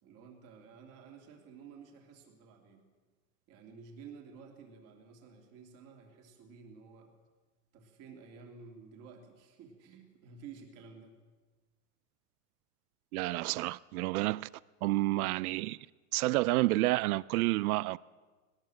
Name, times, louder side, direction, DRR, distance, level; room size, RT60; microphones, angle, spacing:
voice 1, 0.0-2.8 3.5-7.1 7.7-11.2, right 5 dB, 35° right, 2.9 m, -52 dB
voice 2, 13.1-14.5 14.8-15.8 16.1-18.0, right 19 dB, 85° right, 0.6 m, -29 dB
19.5 x 19.0 x 7.7 m
supercardioid pair, 175°, 43 cm